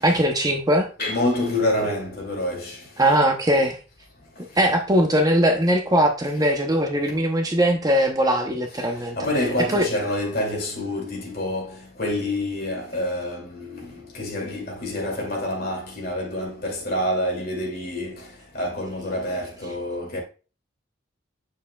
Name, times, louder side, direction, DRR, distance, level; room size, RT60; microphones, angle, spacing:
voice 1, 0.0-0.9 3.0-3.8 4.6-9.2 9.6-9.9, equal, 20° right, 0.7 m, -20 dB
voice 2, 1.0-2.8 9.2-13.9 14.1-18.3 18.5-20.2, left 1 dB, 50° left, 2.4 m, -27 dB
8.1 x 6.6 x 2.3 m
head